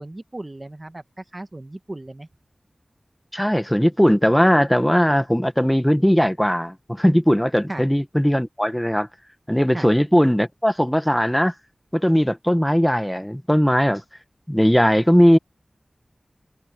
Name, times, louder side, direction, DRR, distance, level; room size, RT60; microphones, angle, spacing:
voice 1, 0.0-2.3 7.7-7.9 9.7-9.9, right 1 dB, 30° right, 1.6 m, -36 dB
voice 2, 3.3-9.1 9.5-11.5 11.9-14.0 14.5-15.4, equal, 5° left, 1.5 m, -18 dB
wide cardioid pair, 80°, 0 cm